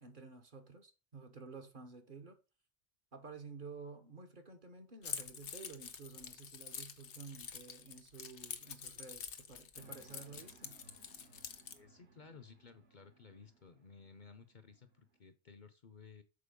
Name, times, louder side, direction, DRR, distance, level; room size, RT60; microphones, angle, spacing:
voice 1, 0.0-2.4 3.1-10.7, right 4 dB, 50° right, 1.2 m, -52 dB
Keys jangling, 5.0-11.8, left 7 dB, 80° left, 1.2 m, -47 dB
sound 1, 9.8-15.2, right 3 dB, 65° right, 1.4 m, -64 dB
voice 2, 11.7-16.2, left 5 dB, 50° left, 0.8 m, -57 dB
6.9 x 4.4 x 5.1 m
omnidirectional pair, 1.2 m